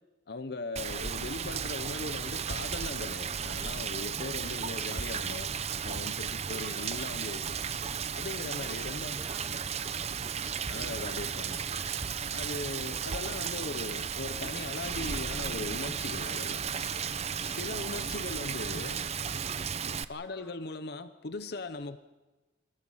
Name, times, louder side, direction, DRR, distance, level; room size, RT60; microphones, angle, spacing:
voice 1, 0.3-5.5 5.8-7.6 8.1-9.2 10.7-11.7 12.3-16.7 17.5-19.0 20.1-22.0, left 3 dB, 55° left, 11 dB, 0.8 m, -39 dB
Rain, 0.8-20.0, right 7 dB, 35° right, 0.7 m, -34 dB
voice 2, 8.4-10.7 20.2-20.6, right 1 dB, 10° right, -1 dB, 4.3 m, -56 dB
28.5 x 22.5 x 5.6 m, 1.2 s
head